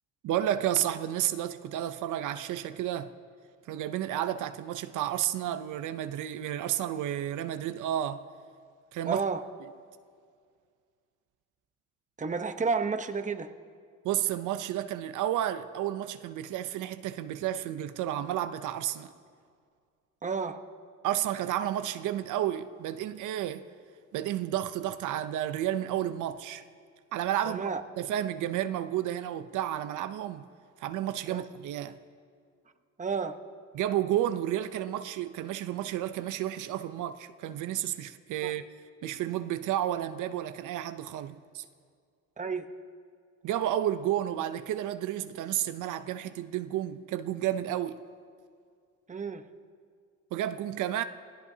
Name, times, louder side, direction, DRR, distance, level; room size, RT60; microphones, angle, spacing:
voice 1, 0.2-3.1 3.7-8.2 8.9-9.2 14.0-19.1 21.0-23.7 24.1-26.6 27.1-30.4 30.8-32.0 33.7-38.6 39.0-41.6 43.4-48.0 50.3-51.0, right 12 dB, 80° right, 0.6 m, -31 dB
voice 2, 9.0-9.4 12.2-13.5 20.2-20.6 27.4-27.8 31.3-31.5 33.0-33.4 38.4-38.5 42.4-42.7 49.1-49.4, right 5 dB, 25° right, 0.9 m, -31 dB
27.5 x 17.0 x 2.8 m
cardioid pair, 90°, 30 cm